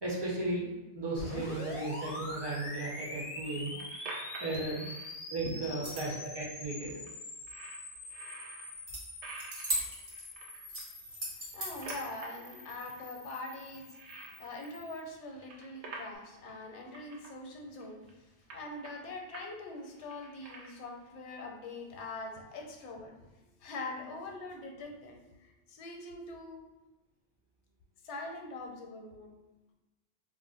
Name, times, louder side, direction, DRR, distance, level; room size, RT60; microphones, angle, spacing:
voice 1, 0.0-3.8 4.4-4.8 5.3-7.0, right 2 dB, 30° right, -4 dB, 0.5 m, -35 dB
sound 1, 1.2-15.0, left 1 dB, 45° left, 0.4 m, -45 dB
sound 2, 3.3-5.1 5.9-6.0 6.2-6.3 6.7-7.1 7.5-8.7 9.2-10.8 11.3-13.0 13.3-14.9 15.2-16.2 16.5-16.6 16.8-17.3 17.8-18.1 18.5-19.5 19.8-21.0, right 3 dB, 85° right, 0.9 m, -48 dB
voice 2, 5.4-5.9 11.5-23.3 23.6-26.6 28.0-29.3, left 2 dB, 85° left, 2 dB, 0.9 m, -43 dB
sound 3, 5.6-6.3 8.9-9.0 9.3-10.3 10.7-12.0, right 1 dB, 50° right, 0.9 m, -37 dB
2.4 x 2.0 x 3.8 m, 1.1 s
omnidirectional pair, 1.1 m